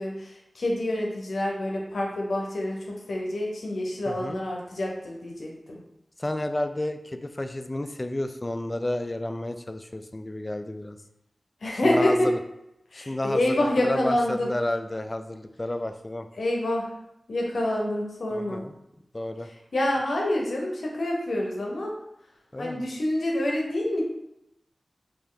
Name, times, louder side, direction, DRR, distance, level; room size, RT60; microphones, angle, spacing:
voice 1, 0.0-5.8 11.6-12.3 12.9-14.5 16.4-16.9 17.3-18.6 19.7-21.9 22.6-24.0, left 1 dB, 85° left, -1 dB, 0.7 m, -27 dB
voice 2, 4.1-4.4 6.2-11.0 11.8-12.4 12.9-16.3 18.3-18.7 19.1-19.5 22.5-22.9, left 1 dB, 30° left, 9 dB, 0.3 m, -31 dB
3.1 x 2.8 x 3.7 m, 0.84 s
cardioid pair, 40°, 0 cm